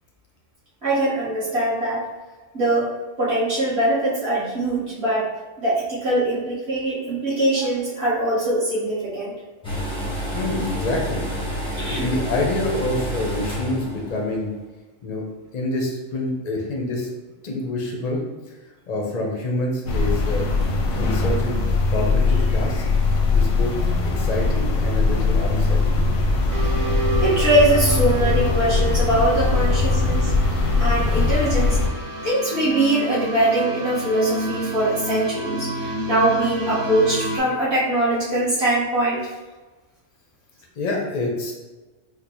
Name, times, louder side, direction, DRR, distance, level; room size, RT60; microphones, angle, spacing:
voice 1, 0.8-2.0 2.5-2.9 3.2-5.3 5.6-9.3 11.8-12.1 27.2-30.3 30.8-31.8 32.2-39.3, right 1 dB, 50° right, -10 dB, 1.7 m, -22 dB
sound 1, 9.6-14.1 14.3-14.4, equal, 5° left, 0.7 m, -28 dB
voice 2, 10.3-11.3 11.9-14.5 15.0-15.2 15.5-17.1 17.4-18.2 18.5-18.6 18.9-20.5 21.0-21.6 21.9-23.7 24.2-26.1 40.8-41.5, left 2 dB, 45° left, 0 dB, 0.5 m, -27 dB
sound 2, 19.9-31.9, left 3 dB, 85° left, 1.1 m, -21 dB
sound 3, 26.5-37.4, right 1 dB, 75° right, 1.0 m, -30 dB
4.9 x 2.2 x 3.0 m, 1.2 s
omnidirectional pair, 1.4 m